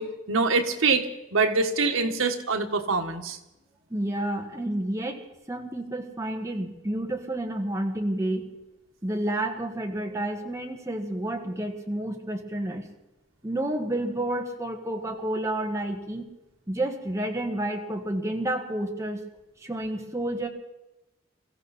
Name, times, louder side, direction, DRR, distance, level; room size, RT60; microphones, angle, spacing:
voice 1, 0.0-3.4, right 4 dB, 85° right, 5 dB, 1.5 m, -25 dB
voice 2, 3.9-5.2 5.5-8.5 9.0-12.8 13.4-16.3 16.7-19.2 19.6-20.5, right 1 dB, 15° right, 2 dB, 1.7 m, -30 dB
22.5 x 15.0 x 4.2 m, 0.94 s
head